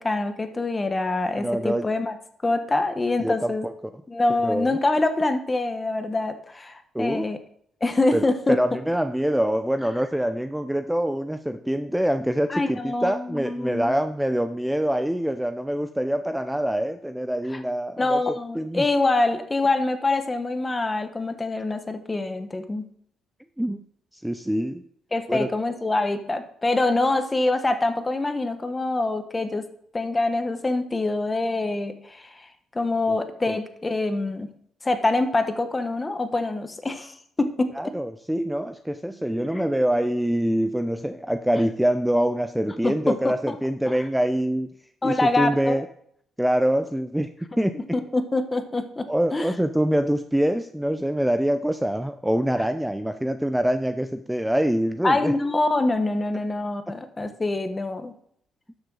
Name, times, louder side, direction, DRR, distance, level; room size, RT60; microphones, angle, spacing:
voice 1, 0.0-2.2 2.4-3.7 4.1-7.4 7.8-8.6 12.5-14.0 17.5-17.6 18.0-22.8 25.1-29.7 29.9-32.5 32.7-34.5 34.8-37.7 42.8-43.5 45.0-45.8 47.5-49.5 55.0-58.1, left 2 dB, 20° left, 8 dB, 1.1 m, -25 dB
voice 2, 1.4-1.9 3.2-3.7 4.4-4.8 6.9-7.3 8.1-18.2 18.5-18.9 23.6-23.8 24.2-24.8 25.3-25.5 33.5-33.6 37.8-44.7 45.0-45.8 46.4-47.3 47.6-47.8 49.1-55.3, equal, 5° right, 9 dB, 0.5 m, -25 dB
12.0 x 6.6 x 3.9 m, 0.68 s
cardioid pair, 90°, 0 cm